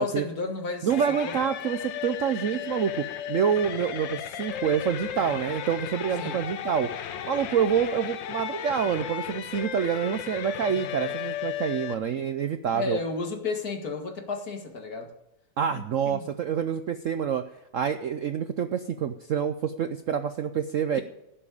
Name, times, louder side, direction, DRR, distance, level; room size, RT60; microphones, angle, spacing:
voice 1, 0.0-1.3 6.2-6.4 12.7-15.1 15.8-16.3, left 4 dB, 55° left, 4 dB, 2.2 m, -32 dB
voice 2, 0.8-6.9 7.3-13.0 15.6-21.0, right 8 dB, 65° right, 10 dB, 0.8 m, -27 dB
sound 1, 0.9-11.9, left 10 dB, 85° left, 1.6 m, -35 dB
16.5 x 7.4 x 8.6 m, 0.89 s
omnidirectional pair, 2.0 m